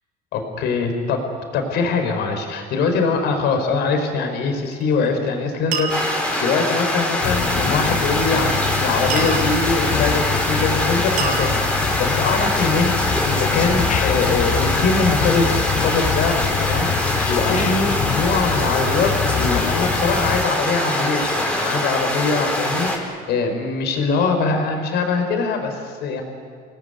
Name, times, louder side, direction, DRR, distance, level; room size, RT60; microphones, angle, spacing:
voice 1, 0.3-1.3 1.5-26.2, left 4 dB, 80° left, 4 dB, 4.8 m, -22 dB
sound 1, 4.7-5.1 5.7-6.4 9.1-9.8 11.2-12.0, right 6 dB, 55° right, 4.0 m, -28 dB
sound 2, 5.9-23.0, left 1 dB, 5° left, 4.6 m, -23 dB
sound 3, 7.2-20.4, left 8 dB, 50° left, 1.1 m, -25 dB
28.0 x 19.5 x 9.3 m, 2.1 s
cardioid pair, 110°, 17 cm